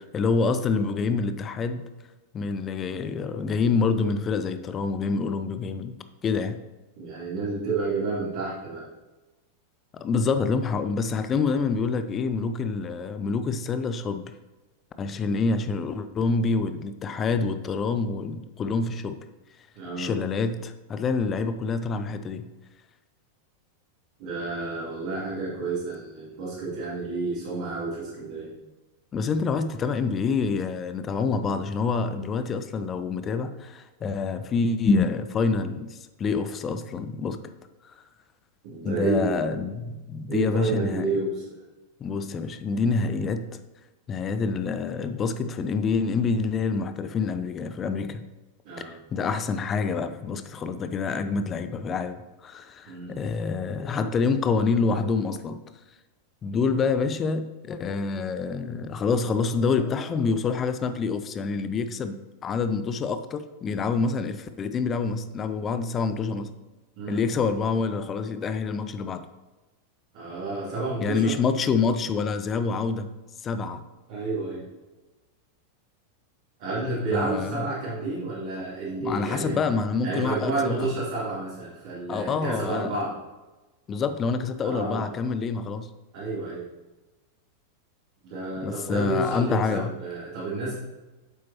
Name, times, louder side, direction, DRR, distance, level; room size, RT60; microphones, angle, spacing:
voice 1, 0.1-1.8 2.3-6.6 9.9-14.2 15.0-19.2 20.0-22.5 29.1-37.4 37.8-38.0 38.8-41.1 42.0-43.5 44.1-48.2 48.8-55.6 56.4-66.5 67.1-69.2 71.0-73.1 73.4-73.8 77.1-77.7 79.0-80.9 82.1-83.1 83.9-85.9 88.6-89.9, left 4 dB, 25° left, 10 dB, 0.5 m, -27 dB
voice 2, 7.0-8.8 19.7-20.1 24.2-28.5 38.6-39.4 40.3-41.4 48.6-48.9 52.9-53.1 67.0-67.2 70.1-71.3 74.1-74.6 76.6-79.6 80.0-83.1 84.6-85.1 86.1-86.7 88.2-90.8, right 3 dB, 50° right, -8 dB, 2.7 m, -30 dB
9.2 x 7.6 x 3.0 m, 1.1 s
figure-of-eight pair, 90°, 0 cm